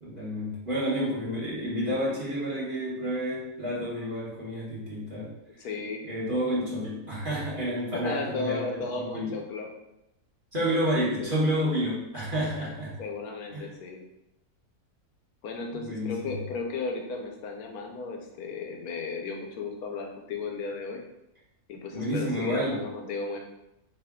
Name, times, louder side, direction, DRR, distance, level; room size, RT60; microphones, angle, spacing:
voice 1, 0.0-5.3 6.1-9.4 10.5-13.0 13.5-13.7 15.7-16.4 21.9-22.8, equal, 35° right, -8 dB, 1.2 m, -30 dB
voice 2, 5.6-6.0 7.9-9.7 11.0-11.4 13.0-14.0 15.4-21.0 21.7-23.4, left 4 dB, 75° left, 2 dB, 1.2 m, -35 dB
4.9 x 2.6 x 3.6 m, 0.87 s
omnidirectional pair, 1.6 m